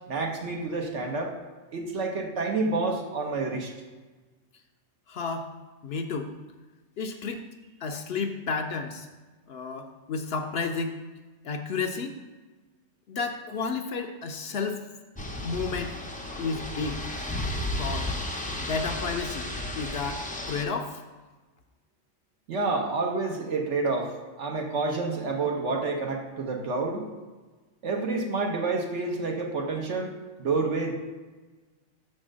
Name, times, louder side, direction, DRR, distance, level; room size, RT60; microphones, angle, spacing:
voice 1, 0.1-1.3 1.7-3.7 22.5-24.1 24.4-27.1 27.8-30.9, right 3 dB, 70° right, 1 dB, 1.2 m, -29 dB
voice 2, 5.1-5.5 5.8-6.3 7.0-7.4 7.8-9.1 9.5-11.0 11.4-12.1 13.1-14.9 15.4-15.9 16.4-17.1 17.8-18.1 18.6-19.5 19.8-20.2 20.5-21.0, left 4 dB, 60° left, 5 dB, 0.7 m, -31 dB
sound 1, 15.1-20.6, left 1 dB, 10° left, 0.3 m, -33 dB
6.4 x 4.3 x 6.2 m, 1.3 s
omnidirectional pair, 1.3 m